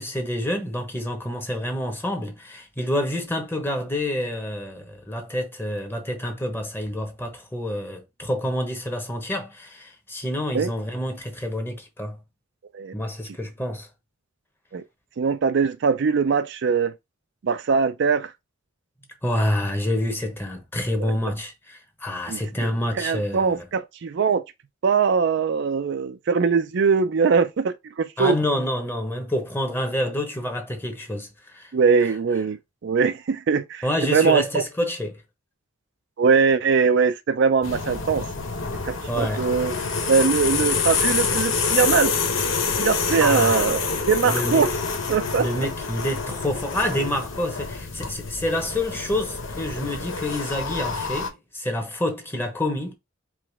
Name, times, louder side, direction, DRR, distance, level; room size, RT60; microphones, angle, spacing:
voice 1, 0.0-12.2 12.9-13.9 19.2-23.6 28.2-31.7 32.0-32.1 33.8-35.2 39.1-39.5 43.2-43.7 44.2-44.7 45.4-52.9, left 1 dB, 10° left, 1.0 m, -28 dB
voice 2, 15.2-16.9 17.4-18.3 21.0-21.1 22.3-22.4 22.9-24.4 24.8-28.4 31.7-34.6 36.2-38.2 38.8-39.8 40.1-42.1 42.8-44.7 45.1-45.5, right 5 dB, 55° right, 0.4 m, -21 dB
sound 1, 37.6-51.3, left 5 dB, 70° left, 0.9 m, -27 dB
4.8 x 3.2 x 3.4 m
head